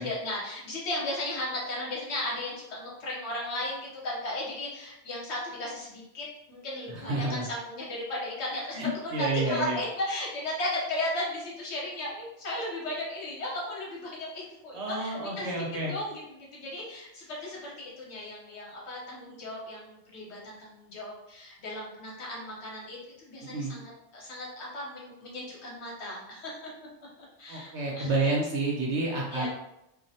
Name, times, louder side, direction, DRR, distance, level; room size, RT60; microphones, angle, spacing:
voice 1, 0.0-26.7 27.2-28.3 29.3-29.5, left 1 dB, 70° left, -4 dB, 1.0 m, -36 dB
voice 2, 6.9-7.4 8.7-9.8 14.7-15.9 23.4-23.8 27.5-29.5, right 2 dB, 80° right, -2 dB, 0.9 m, -30 dB
2.4 x 2.0 x 2.6 m, 0.87 s
omnidirectional pair, 1.2 m